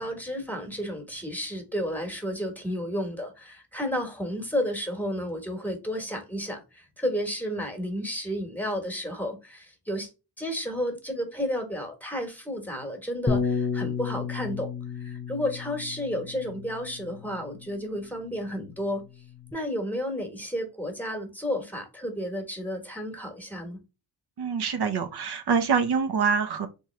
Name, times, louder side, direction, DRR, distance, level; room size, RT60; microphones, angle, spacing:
voice 1, 0.0-10.1 10.4-14.7 14.9-19.0 19.5-23.8, equal, 5° left, 1.2 m, -32 dB
Bass guitar, 13.3-17.8 18.5-19.5, left 5 dB, 20° left, 0.4 m, -32 dB
voice 2, 24.4-26.7, right 6 dB, 70° right, 0.7 m, -25 dB
3.6 x 3.1 x 3.1 m
wide cardioid pair, 115°, 41 cm